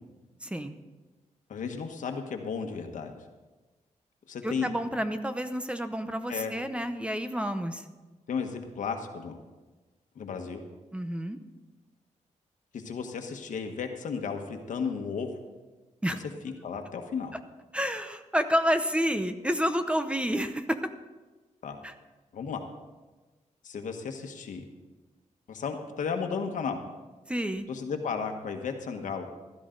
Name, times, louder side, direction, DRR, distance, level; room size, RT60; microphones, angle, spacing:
voice 1, 0.4-0.7 4.4-7.8 10.9-11.4 16.0-16.2 17.7-20.8 21.8-21.9 27.3-27.7, equal, 10° right, 9 dB, 0.7 m, -29 dB
voice 2, 1.5-3.1 4.3-4.7 6.3-6.5 8.3-9.4 10.1-10.6 12.7-15.3 16.4-17.3 21.6-21.8 22.3-22.6 23.6-24.6 25.5-26.8 27.7-29.2, left 6 dB, 80° left, 5 dB, 1.4 m, -34 dB
16.0 x 12.5 x 3.9 m, 1.2 s
wide cardioid pair, 125°, 13 cm